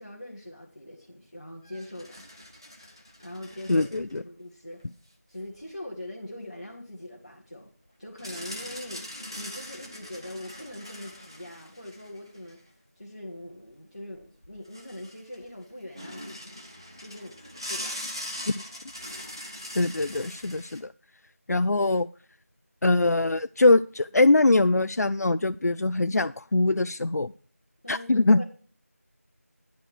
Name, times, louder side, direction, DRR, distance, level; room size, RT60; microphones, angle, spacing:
voice 1, 0.0-2.3 3.2-4.8 5.3-7.7 8.0-12.6 12.9-16.5 17.0-17.4 17.7-18.1 27.8-28.4, left 1 dB, 25° left, -6 dB, 1.2 m, -42 dB
sound 1, 1.6-4.2 4.8-4.9 8.2-12.6 14.1-14.2 14.4-15.5 15.9-20.8, left 1 dB, 15° right, 0.7 m, -41 dB
voice 2, 3.7-4.2 19.8-20.9 21.5-22.1 22.8-27.3 27.9-28.4, left 2 dB, 90° left, 12 dB, 0.4 m, -22 dB
10.0 x 5.1 x 6.4 m, 0.42 s
figure-of-eight pair, 175°, 8 cm